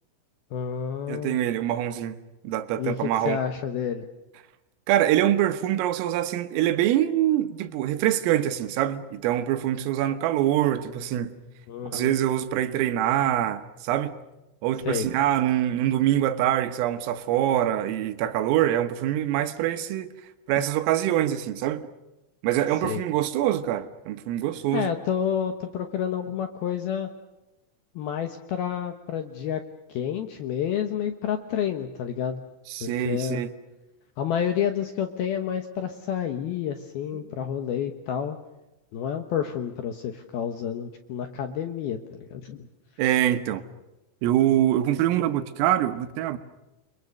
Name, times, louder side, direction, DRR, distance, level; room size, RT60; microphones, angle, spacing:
voice 1, 0.5-1.4 2.8-4.1 11.7-12.2 14.9-15.1 22.8-23.0 24.7-27.1 28.0-29.6 29.9-32.4 32.8-33.5 34.2-38.4 38.9-42.7, left 8 dB, 75° left, 2.3 m, -29 dB
voice 2, 1.1-2.2 2.4-3.4 4.9-11.4 11.9-14.1 14.6-20.1 20.5-21.8 22.4-24.9 32.7-33.5 37.1-37.2 43.0-43.6 44.2-46.4, right 12 dB, 85° right, 3.9 m, -24 dB
29.5 x 23.0 x 6.5 m
omnidirectional pair, 5.8 m